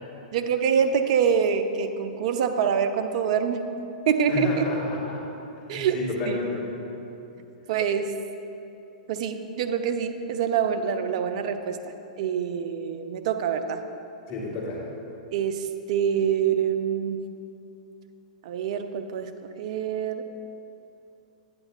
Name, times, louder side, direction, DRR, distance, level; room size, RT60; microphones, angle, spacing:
voice 1, 0.3-3.8 4.1-4.7 5.7-6.0 6.3-6.4 7.7-8.1 9.1-11.8 12.2-13.8 15.3-17.2 18.4-19.3 19.6-20.2, right 7 dB, 55° right, 8 dB, 0.5 m, -25 dB
voice 2, 4.3-5.2 5.7-6.7 14.3-14.8, left 2 dB, 40° left, -5 dB, 1.5 m, -31 dB
9.6 x 8.7 x 2.4 m, 2.8 s
hypercardioid pair, 110°, 4 cm